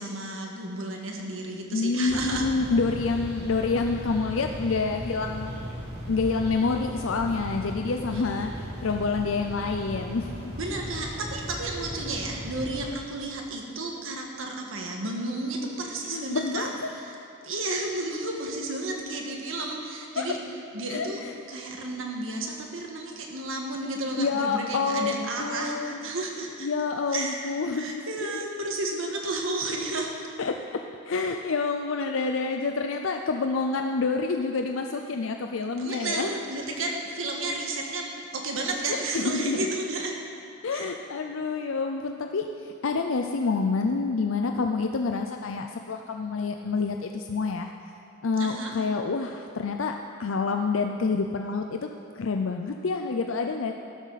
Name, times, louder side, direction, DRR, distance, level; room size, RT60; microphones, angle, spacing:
voice 1, 0.0-2.5 10.6-17.1 17.4-20.4 20.7-21.2 21.5-26.7 27.1-30.1 35.8-38.1 38.3-40.2 40.7-41.0 48.4-48.8, right 2 dB, 70° right, 1 dB, 1.7 m, -32 dB
voice 2, 1.7-5.6 6.1-8.5 8.8-10.5 16.1-16.9 20.2-20.3 20.9-21.3 24.2-26.1 26.6-28.0 28.3-28.4 30.4-36.3 38.9-39.7 40.6-47.7 48.2-51.9 52.1-53.7, left 4 dB, 65° left, 4 dB, 0.5 m, -28 dB
sound 1, 2.1-12.8, equal, 45° right, 3.4 m, -37 dB
14.0 x 12.5 x 4.1 m, 2.8 s
head